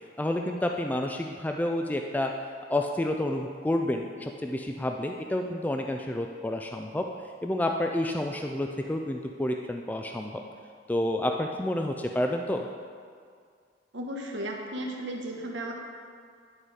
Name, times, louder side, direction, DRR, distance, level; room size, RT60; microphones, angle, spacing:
voice 1, 0.2-2.3 2.7-7.1 7.4-10.4 10.9-12.7, left 1 dB, 10° left, 3 dB, 0.3 m, -29 dB
voice 2, 13.9-15.7, right 1 dB, 80° right, 1 dB, 1.1 m, -35 dB
10.0 x 4.8 x 4.9 m, 2.1 s
head